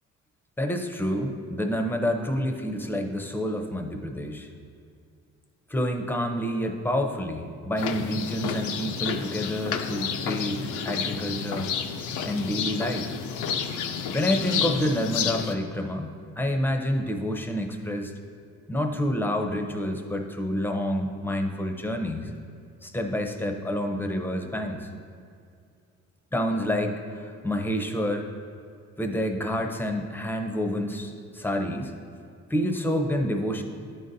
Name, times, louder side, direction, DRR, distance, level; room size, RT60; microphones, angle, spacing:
voice 1, 0.6-4.5 5.7-11.7 12.2-13.1 14.1-18.1 18.7-22.3 22.8-24.9 26.3-28.3 29.0-31.9 32.5-33.6, equal, 5° left, 4 dB, 0.5 m, -28 dB
sound 1, 7.8-15.5, left 7 dB, 85° left, 0.5 m, -30 dB
10.5 x 4.0 x 2.6 m, 2.3 s
cardioid pair, 90°, 30 cm